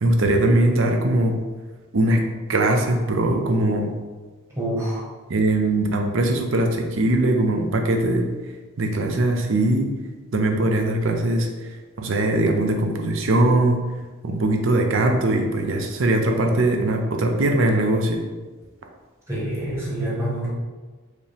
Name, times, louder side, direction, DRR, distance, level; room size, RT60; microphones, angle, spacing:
voice 1, 0.0-1.4 1.9-2.2 2.5-3.9 5.3-8.3 8.8-9.9 10.3-13.8 14.2-18.2, right 1 dB, 60° right, 3 dB, 0.6 m, -21 dB
voice 2, 4.5-5.1 19.3-20.5, right 1 dB, 15° right, -6 dB, 1.2 m, -26 dB
4.7 x 2.9 x 3.4 m, 1.3 s
head